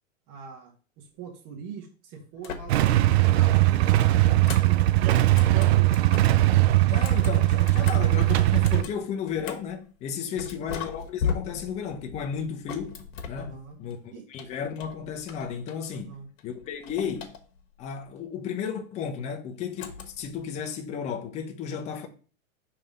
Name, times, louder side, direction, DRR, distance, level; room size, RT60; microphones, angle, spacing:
voice 1, 0.3-3.0 3.3-6.0 10.3-10.7 13.3-13.8 14.1-14.3 15.9-16.3, right 6 dB, 35° right, 1.4 m, -43 dB
sound 1, 2.4-3.1 3.4-6.4 6.9-9.8 10.4-13.9 14.3-16.1 16.4-17.8 19.8-20.4, left 6 dB, 65° left, 1.3 m, -38 dB
Motorcycle / Engine starting / Idling, 2.7-8.8, right 16 dB, 50° right, 0.5 m, -20 dB
voice 2, 6.9-17.3 17.8-22.1, left 7 dB, 15° left, 0.5 m, -34 dB
5.5 x 3.4 x 5.2 m
supercardioid pair, 145°, 40 cm